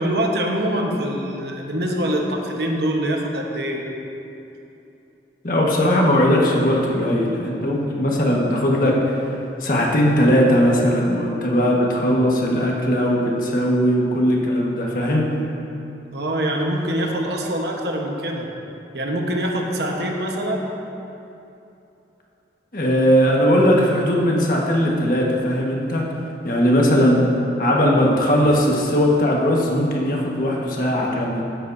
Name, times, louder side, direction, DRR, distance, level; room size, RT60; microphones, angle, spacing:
voice 1, 0.0-3.8 16.1-18.5 18.9-20.6, right 1 dB, 70° right, 1 dB, 1.2 m, -24 dB
voice 2, 5.4-8.9 9.6-15.3 22.7-26.1 26.4-27.2 27.6-31.4, equal, 50° left, -2 dB, 1.6 m, -19 dB
15.0 x 10.5 x 2.8 m, 2.8 s
head